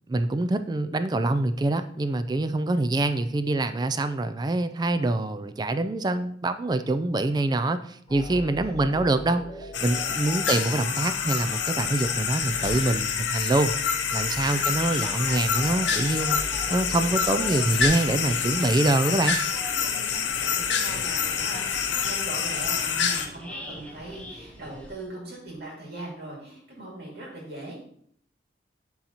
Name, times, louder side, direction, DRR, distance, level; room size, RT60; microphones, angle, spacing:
voice 1, 0.1-13.7 14.1-16.4 16.7-19.4, right 2 dB, 20° right, 10 dB, 0.3 m, -25 dB
sound 1, 8.1-17.6, left 1 dB, 25° left, 1.1 m, -40 dB
voice 2, 8.6-9.0 10.1-10.5 19.8-27.8, right 2 dB, 60° right, -3 dB, 2.3 m, -40 dB
sound 2, 9.7-23.3, left 7 dB, 80° left, 0.7 m, -27 dB
sound 3, 14.1-24.9, equal, 5° left, 0.7 m, -43 dB
11.0 x 3.9 x 2.9 m, 0.65 s
head